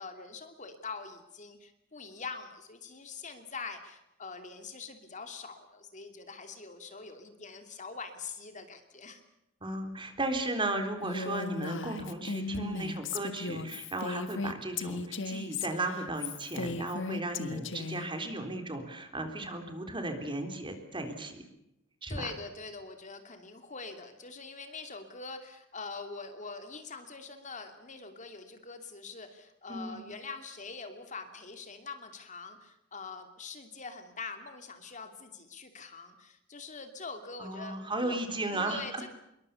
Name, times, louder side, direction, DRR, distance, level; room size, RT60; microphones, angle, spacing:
voice 1, 0.0-9.2 22.1-38.2 38.5-39.1, left 4 dB, 40° left, 7 dB, 2.8 m, -44 dB
voice 2, 9.6-21.4 22.0-22.3 29.7-30.0 37.4-39.1, right 2 dB, 25° right, 6 dB, 3.7 m, -35 dB
Female speech woman speaking, 11.0-18.1, left 4 dB, 70° left, 1.8 m, -36 dB
26.5 x 23.0 x 7.0 m, 0.86 s
head